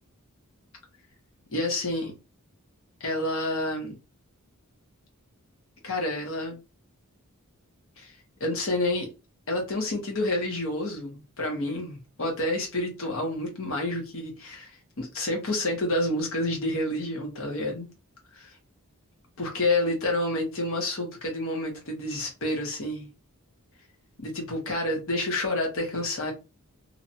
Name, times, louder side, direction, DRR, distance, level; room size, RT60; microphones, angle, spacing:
voice 1, 1.5-2.1 3.0-3.9 5.8-6.6 8.0-8.1 8.4-9.1 9.5-14.7 15.0-17.9 19.4-23.1 24.2-26.3, left 1 dB, 65° left, 1.2 m, -29 dB
2.8 x 2.4 x 2.7 m
head